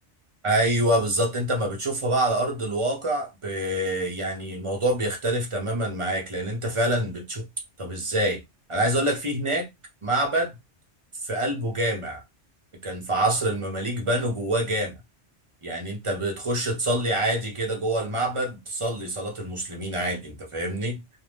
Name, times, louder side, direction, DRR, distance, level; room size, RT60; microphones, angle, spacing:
voice 1, 0.4-7.4 7.8-8.4 8.7-9.7 10.0-10.6 11.2-12.2 12.8-14.9 15.6-21.0, right 1 dB, 30° right, 0.7 m, -26 dB
2.5 x 2.2 x 3.3 m
omnidirectional pair, 1.2 m